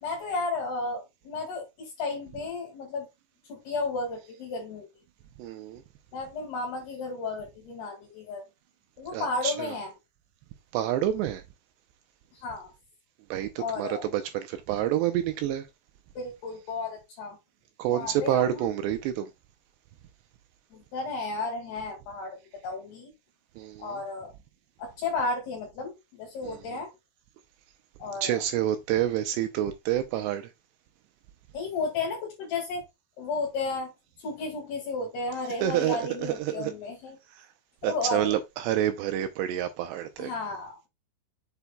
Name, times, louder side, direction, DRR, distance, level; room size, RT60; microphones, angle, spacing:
voice 1, 0.0-3.1 3.5-4.9 6.1-8.4 9.0-9.9 12.3-12.7 13.6-14.1 16.1-17.4 17.9-18.7 20.7-22.4 22.6-23.1 23.8-24.3 24.8-26.9 28.0-28.4 31.5-32.8 33.2-33.9 34.2-37.2 37.8-38.4 40.2-40.9, left 3 dB, 65° left, 3.4 m, -33 dB
voice 2, 5.4-5.8 9.1-9.7 10.7-11.4 13.3-15.7 17.8-19.3 23.6-24.0 26.4-26.8 28.2-30.5 35.6-36.0 36.5-36.7 37.4-37.5 37.8-40.3, right 11 dB, 85° right, 2.5 m, -28 dB
7.9 x 7.1 x 2.3 m
omnidirectional pair, 5.5 m